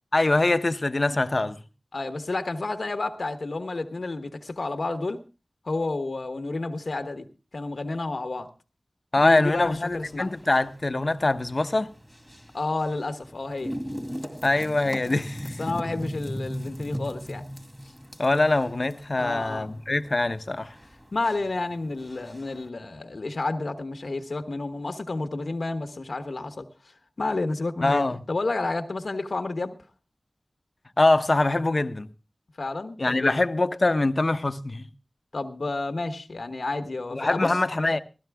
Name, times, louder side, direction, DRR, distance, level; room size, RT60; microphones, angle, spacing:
voice 1, 0.1-1.6 9.1-11.9 14.4-15.6 18.2-20.7 27.8-28.2 31.0-32.1 33.0-34.9 37.1-38.0, left 2 dB, 55° left, 0.9 m, -23 dB
voice 2, 1.9-5.2 5.6-7.3 7.5-8.5 9.1-10.3 12.5-13.8 15.6-17.4 19.2-19.8 21.1-26.7 27.2-29.7 32.6-33.4 35.3-37.5, left 3 dB, 80° left, 1.2 m, -30 dB
sound 1, 9.5-22.7, equal, 10° right, 2.3 m, -39 dB
17.0 x 14.0 x 3.5 m
wide cardioid pair, 60°, 0 cm